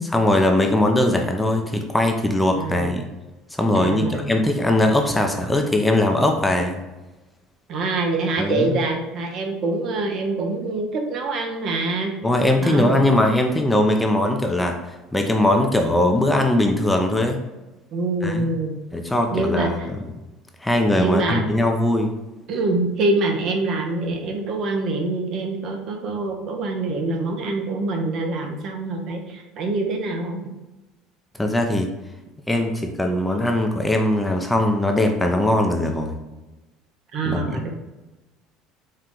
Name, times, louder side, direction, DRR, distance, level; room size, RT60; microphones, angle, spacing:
voice 1, 0.1-3.0 3.6-6.8 8.4-8.8 12.2-14.8 15.1-17.4 18.2-18.5 18.9-20.1 20.6-22.1 31.4-31.9 32.5-36.1 37.3-37.6, left 1 dB, 10° left, 3 dB, 0.5 m, -20 dB
voice 2, 2.5-2.9 3.7-4.3 7.7-12.1 12.6-13.0 17.9-18.8 19.3-19.7 20.9-21.4 22.5-30.5 37.1-37.7, right 2 dB, 55° right, 3 dB, 0.8 m, -25 dB
4.3 x 2.4 x 3.7 m, 1.1 s
supercardioid pair, 100°, 0 cm